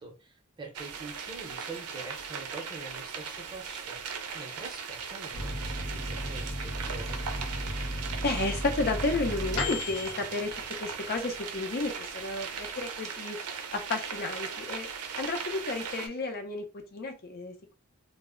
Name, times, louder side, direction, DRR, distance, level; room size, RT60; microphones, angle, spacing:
voice 1, 0.0-4.0 4.3-7.2, right 3 dB, 20° right, 0 dB, 0.6 m, -45 dB
sound 1, 0.7-16.1, right 6 dB, 90° right, 0.5 m, -38 dB
Microwave oven, 5.3-11.4 11.8-11.9 12.2-12.8, equal, 85° left, 0.8 m, -35 dB
voice 2, 8.2-10.5 10.8-13.4 13.7-14.9 15.2-16.6 16.9-17.8, left 2 dB, 45° left, 4 dB, 0.5 m, -32 dB
2.0 x 2.0 x 3.6 m, 0.30 s
head